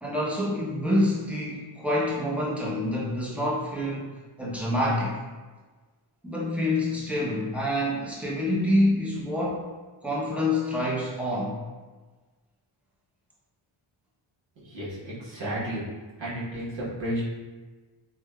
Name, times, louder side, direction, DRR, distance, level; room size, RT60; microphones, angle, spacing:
voice 1, 0.0-4.1 4.4-5.2 6.2-9.7 10.0-11.6, left 1 dB, 5° right, -6 dB, 0.6 m, -27 dB
voice 2, 14.6-15.8 16.2-17.2, right 1 dB, 65° right, -8 dB, 1.1 m, -32 dB
3.3 x 2.1 x 2.2 m, 1.3 s
wide cardioid pair, 95°, 49 cm